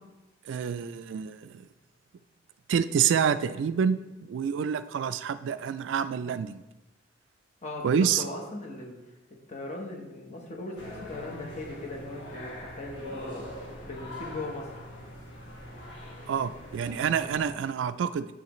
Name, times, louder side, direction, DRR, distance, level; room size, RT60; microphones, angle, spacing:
voice 1, 0.5-1.7 2.7-6.6 7.8-8.2 16.3-18.3, right 7 dB, 80° right, 13 dB, 0.3 m, -27 dB
voice 2, 7.6-9.0 9.5-14.8, left 2 dB, 40° left, 0 dB, 0.9 m, -39 dB
sound 1, 10.8-17.5, left 1 dB, 65° left, 1.4 m, -42 dB
7.3 x 5.5 x 3.0 m, 1.0 s
head